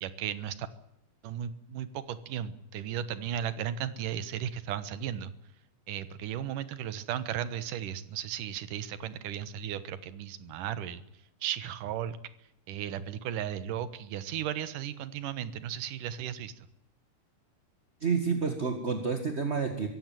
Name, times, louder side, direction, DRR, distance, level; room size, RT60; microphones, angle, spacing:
voice 1, 0.0-0.7 1.2-5.3 5.9-11.0 11.4-12.2 12.7-16.5, right 10 dB, 85° right, 14 dB, 2.9 m, -35 dB
voice 2, 18.0-19.9, right 5 dB, 30° right, 6 dB, 1.5 m, -29 dB
24.0 x 16.0 x 9.1 m, 0.81 s
omnidirectional pair, 3.6 m